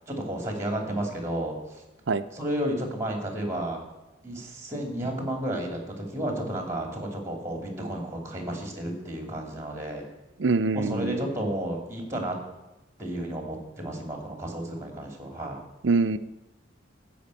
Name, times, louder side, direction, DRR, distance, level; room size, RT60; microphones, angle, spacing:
voice 1, 0.1-1.6 2.3-3.8 4.2-10.1 10.7-12.4 13.0-15.6, right 1 dB, 15° right, 3 dB, 2.6 m, -32 dB
voice 2, 10.4-11.2 15.8-16.2, right 3 dB, 70° right, 12 dB, 0.6 m, -24 dB
14.0 x 5.2 x 8.3 m, 0.97 s
head